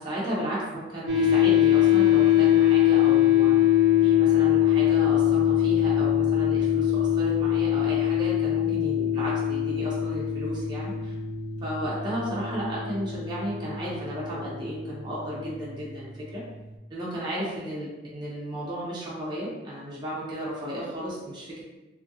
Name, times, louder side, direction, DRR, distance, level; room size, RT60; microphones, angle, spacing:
voice 1, 0.0-3.6 4.0-11.1 11.6-16.4 16.9-21.6, right 1 dB, 25° right, -7 dB, 0.6 m, -34 dB
sound 1, 1.1-16.3, left 11 dB, 80° right, 0.4 m, -23 dB
2.7 x 2.5 x 2.6 m, 1.1 s
head